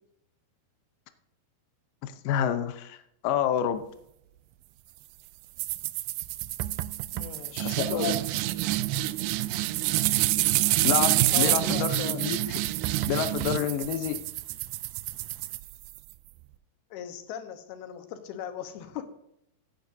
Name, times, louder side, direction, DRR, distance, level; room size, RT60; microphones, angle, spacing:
voice 1, 2.0-3.0 3.2-3.8 7.6-8.1 10.8-12.6 13.1-14.2, left 9 dB, 75° left, 9 dB, 2.3 m, -28 dB
sound 1, 5.6-16.1, right 17 dB, 80° right, 2.2 m, -27 dB
voice 2, 7.1-8.2 11.3-12.2 16.9-19.1, left 9 dB, 90° left, 8 dB, 3.1 m, -38 dB
16.0 x 10.5 x 2.7 m, 0.77 s
omnidirectional pair, 4.4 m